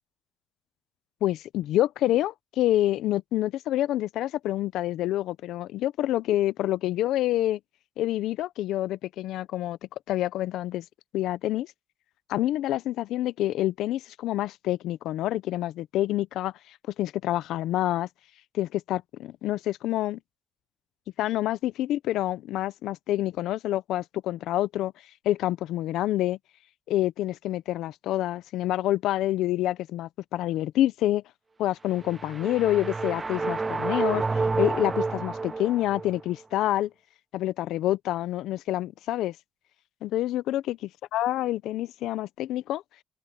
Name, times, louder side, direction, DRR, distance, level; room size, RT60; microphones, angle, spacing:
voice 1, 1.2-7.6 8.0-9.8 10.1-10.8 11.1-11.7 12.3-18.1 18.5-20.2 21.2-24.9 25.2-26.4 26.9-31.2 31.6-36.9 37.3-39.3 40.0-40.8 41.1-42.8, left 14 dB, 85° left, 0.5 m, -27 dB
sound 1, 31.9-36.2, right 3 dB, 25° right, 0.3 m, -29 dB
cardioid pair, 90°, 0 cm